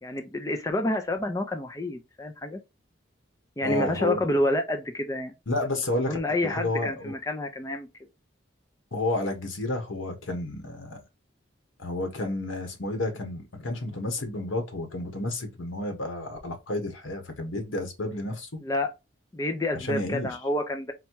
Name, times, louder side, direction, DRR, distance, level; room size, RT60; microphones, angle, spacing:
voice 1, 0.0-2.6 3.6-5.3 6.1-7.9 18.6-18.9 19.3-20.9, left 1 dB, 15° left, 0.4 m, -28 dB
voice 2, 3.6-4.3 5.5-6.2 6.4-7.1 8.9-11.0 11.8-18.6 19.7-20.4, left 2 dB, 85° left, 1.2 m, -31 dB
4.1 x 2.3 x 4.5 m
head